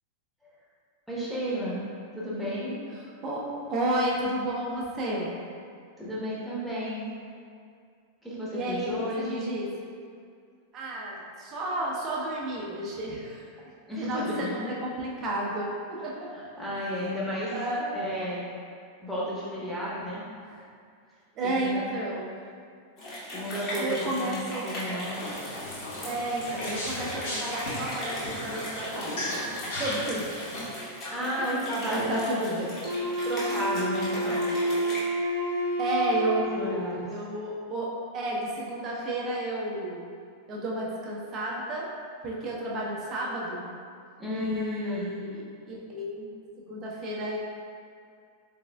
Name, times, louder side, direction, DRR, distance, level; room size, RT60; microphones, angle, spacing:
voice 1, 1.1-1.8 2.1-2.8 6.0-7.0 8.2-9.5 13.9-14.5 16.3-17.5 17.9-18.5 19.0-20.2 21.4-21.8 23.3-25.2 31.1-32.4 33.2-34.5 36.5-37.0 44.2-45.1, equal, ahead, -9 dB, 1.0 m, -32 dB
voice 2, 3.2-5.3 8.5-9.7 10.7-13.4 14.0-16.3 16.8-17.1 17.5-18.0 20.4-20.6 21.4-22.3 23.8-24.7 26.0-29.4 29.6-30.3 31.3-31.5 31.8-32.7 35.8-40.0 40.5-41.9 42.2-43.6 44.3-46.3 46.7-47.4, right 1 dB, 30° right, -4 dB, 0.7 m, -32 dB
sound 1, 23.0-35.0, equal, 35° left, 1.2 m, -38 dB
sound 2, 25.1-30.7, left 1 dB, 55° left, 1.1 m, -36 dB
Wind instrument woodwind instrument, 32.8-37.0, equal, 70° right, 0.6 m, -29 dB
4.1 x 3.4 x 2.2 m, 2.3 s
figure-of-eight pair, 90°, 0 cm